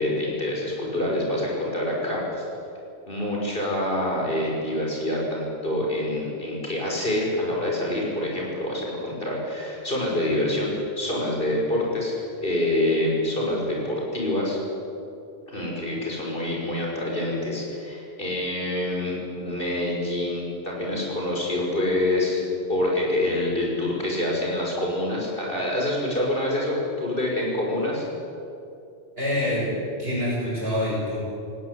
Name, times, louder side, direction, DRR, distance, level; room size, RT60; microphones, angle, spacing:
voice 1, 0.0-2.4 3.1-12.1 12.4-14.6 15.5-22.4 22.7-28.1, left 1 dB, 50° left, -2 dB, 6.1 m, -26 dB
voice 2, 29.2-31.2, left 1 dB, 60° right, -6 dB, 7.4 m, -26 dB
18.5 x 18.0 x 9.8 m, 2.6 s
omnidirectional pair, 1.2 m